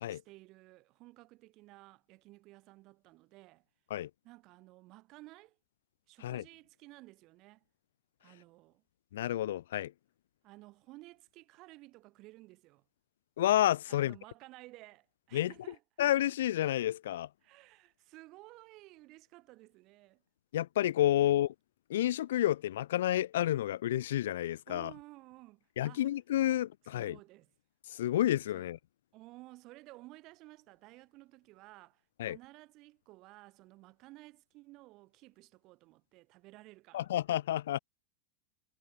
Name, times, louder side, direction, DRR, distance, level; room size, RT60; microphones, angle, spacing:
voice 1, 0.1-3.6 4.2-5.6 6.1-7.6 8.2-8.8 10.4-12.8 13.9-15.8 17.4-20.2 21.2-21.4 24.7-26.1 26.5-26.6 26.9-27.5 28.5-28.7 29.1-37.1, right 20 dB, 40° right, 2.5 m, -55 dB
voice 2, 9.1-9.9 13.4-14.1 15.3-15.5 16.0-17.3 20.5-21.5 21.9-24.9 25.8-27.2 27.9-28.8 32.2-32.4 36.9-37.8, left 13 dB, 60° left, 0.4 m, -30 dB
figure-of-eight pair, 90°, 0 cm